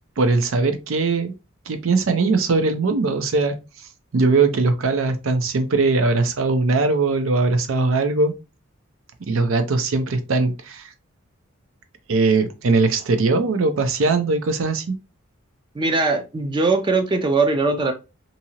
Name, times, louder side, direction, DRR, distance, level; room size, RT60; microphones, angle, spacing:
voice 1, 0.2-1.3 1.7-3.6 4.1-8.3 9.2-10.9 12.1-14.9, right 3 dB, 75° right, 0.5 m, -20 dB
voice 2, 15.7-17.9, right 3 dB, 20° right, 0.4 m, -20 dB
2.7 x 2.6 x 2.8 m
head